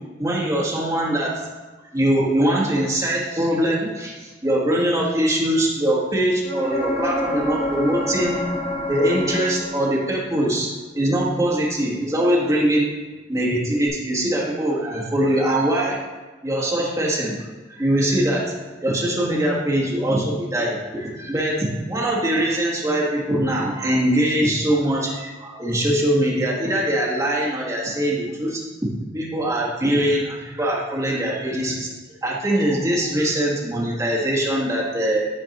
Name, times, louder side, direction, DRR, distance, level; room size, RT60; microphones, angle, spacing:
voice 1, 0.2-1.5 1.9-8.4 8.9-12.9 13.3-16.0 16.4-17.4 17.7-28.6 29.1-31.9 32.2-35.3, right 1 dB, 20° right, -5 dB, 1.4 m, -22 dB
sound 1, 6.4-10.2 13.9-14.0, left 1 dB, 30° left, 1.0 m, -27 dB
10.5 x 4.5 x 2.9 m, 1.3 s
head